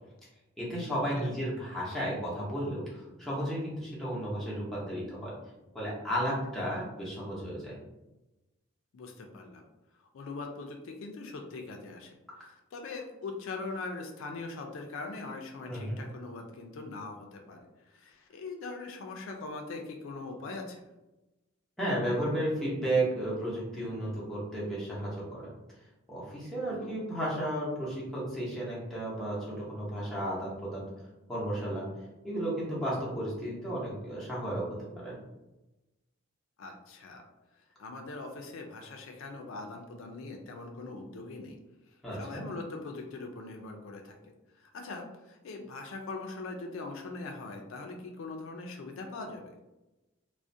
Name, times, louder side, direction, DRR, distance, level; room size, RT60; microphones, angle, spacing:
voice 1, 0.6-5.3 5.7-7.8 15.7-16.0 21.8-25.5 26.1-30.9 31.3-31.9 32.2-35.2 42.0-42.4, right 1 dB, ahead, -8 dB, 0.6 m, -33 dB
voice 2, 8.9-9.6 10.0-12.1 12.4-20.8 26.6-26.9 36.6-37.3 37.8-41.6 42.1-44.2 44.5-49.5, left 3 dB, 75° left, 3 dB, 0.4 m, -41 dB
2.3 x 2.1 x 2.6 m, 1.0 s
head